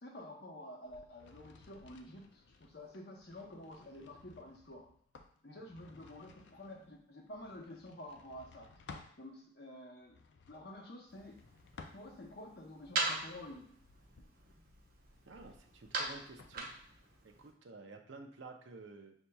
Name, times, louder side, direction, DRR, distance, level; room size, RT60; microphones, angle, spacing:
voice 1, 0.0-2.2 2.6-4.9 5.4-8.7 9.2-10.2 10.5-11.4 11.9-13.7, left 1 dB, 60° left, 1 dB, 0.8 m, -50 dB
sound 1, 0.8-9.2 10.0-12.5 13.0-16.6, left 4 dB, 75° left, 0.4 m, -58 dB
sound 2, 11.1-17.5, right 3 dB, 50° right, 0.7 m, -42 dB
voice 2, 15.3-16.7 17.2-19.1, right 3 dB, 90° right, 4 dB, 0.6 m, -52 dB
6.4 x 2.8 x 2.3 m, 0.64 s
head